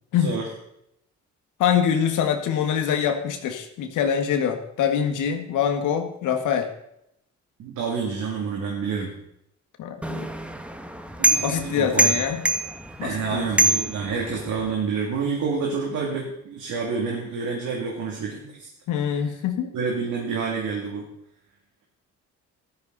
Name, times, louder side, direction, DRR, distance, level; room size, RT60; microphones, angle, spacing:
voice 1, 1.6-6.7 9.8-10.3 11.4-12.4 13.0-13.5 18.9-19.7, left 8 dB, 90° left, 6 dB, 1.8 m, -24 dB
voice 2, 7.6-9.1 11.2-12.1 13.0-18.7 19.7-21.1, right 5 dB, 80° right, -1 dB, 2.8 m, -28 dB
sound 1, 10.0-14.7, right 2 dB, 5° right, 1.2 m, -25 dB
14.0 x 13.0 x 4.1 m, 0.78 s
cardioid pair, 90°, 30 cm